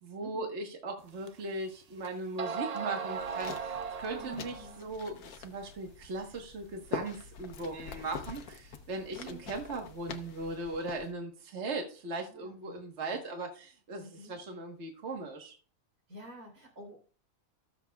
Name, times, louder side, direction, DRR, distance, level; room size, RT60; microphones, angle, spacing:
voice 1, 0.0-15.6, right 2 dB, 50° right, 2 dB, 1.7 m, -38 dB
sound 1, 1.3-1.4 2.0-2.1 2.4-4.8, right 6 dB, 65° right, 0.3 m, -37 dB
sound 2, 3.1-11.1, left 6 dB, 80° left, 1.4 m, -45 dB
voice 2, 4.2-4.9 9.1-9.4 12.3-12.8 14.0-14.4 16.1-17.0, right 1 dB, 85° right, 1 dB, 4.5 m, -50 dB
20.5 x 7.0 x 2.4 m, 0.39 s
omnidirectional pair, 1.5 m